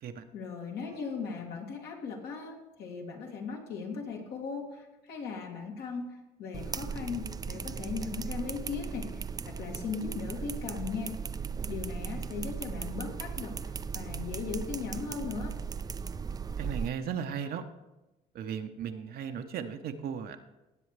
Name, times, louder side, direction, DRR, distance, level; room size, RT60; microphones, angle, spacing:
voice 1, 0.3-11.2 11.7-15.5, left 5 dB, 75° left, 0 dB, 2.5 m, -38 dB
sound 1, 6.5-16.9, right 6 dB, 20° right, 0.4 m, -37 dB
voice 2, 16.6-17.6 18.3-20.4, right 8 dB, 65° right, 6 dB, 0.8 m, -36 dB
18.0 x 7.6 x 3.3 m, 1.0 s
cardioid pair, 110°, 17 cm